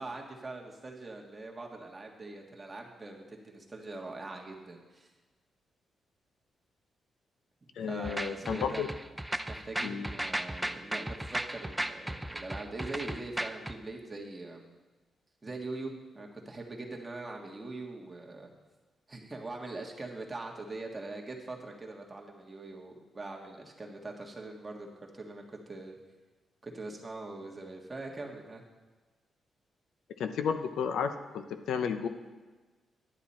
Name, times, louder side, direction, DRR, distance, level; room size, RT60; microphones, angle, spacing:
voice 1, 0.0-5.1 7.8-8.8 9.5-14.7 15.4-18.5 19.1-26.0 26.6-28.6, right 2 dB, 20° right, 0 dB, 1.6 m, -42 dB
voice 2, 7.8-8.9 9.8-10.1 30.2-32.1, left 7 dB, 85° left, 8 dB, 0.7 m, -32 dB
sound 1, 8.0-13.7, right 1 dB, 5° right, 0.5 m, -35 dB
10.0 x 8.9 x 4.3 m, 1.3 s
cardioid pair, 105°, 0 cm